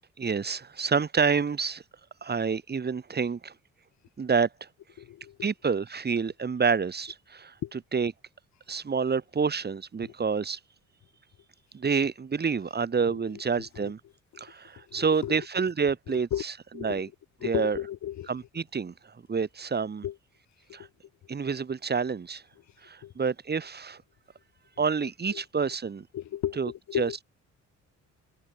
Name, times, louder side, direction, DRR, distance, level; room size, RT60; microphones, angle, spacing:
voice 1, 0.2-1.8 2.2-3.5 4.2-4.7 5.4-7.5 7.9-8.1 8.7-10.6 11.7-14.0 14.4-16.3 16.8-17.1 17.4-17.8 18.3-20.0 20.7-20.9 21.3-22.4 22.8-24.0 24.8-26.1 26.6-26.7 27.0-27.1, right 5 dB, 35° right, 2.0 m, -28 dB
voice 2, 5.0-5.5 7.6-7.7 10.0-10.1 13.0-13.2 13.6-13.9 14.3-14.5 14.8-15.5 16.1-16.4 16.7-17.0 17.4-18.3 20.0-20.2 20.7-20.9 23.0-23.1 25.0-25.4 26.1-27.2, left 12 dB, 65° left, 1.6 m, -35 dB
cardioid pair, 90°, 30 cm